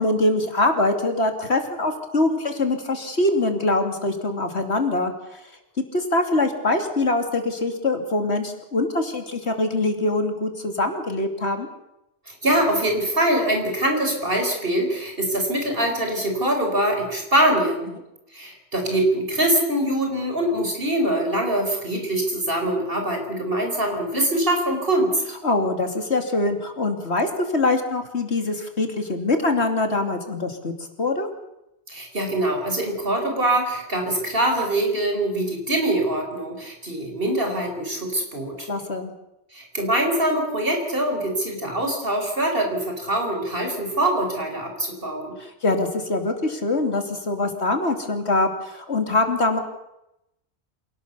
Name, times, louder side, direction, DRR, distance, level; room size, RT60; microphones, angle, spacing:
voice 1, 0.0-5.1 5.9-11.7 25.4-30.7 31.0-31.3 38.7-39.1 45.4-49.6, left 2 dB, 80° left, 5 dB, 3.1 m, -23 dB
voice 2, 12.3-17.9 18.3-25.2 31.9-38.7 39.5-45.4, right 1 dB, 60° right, 3 dB, 5.4 m, -23 dB
27.0 x 18.5 x 7.0 m, 0.86 s
omnidirectional pair, 1.1 m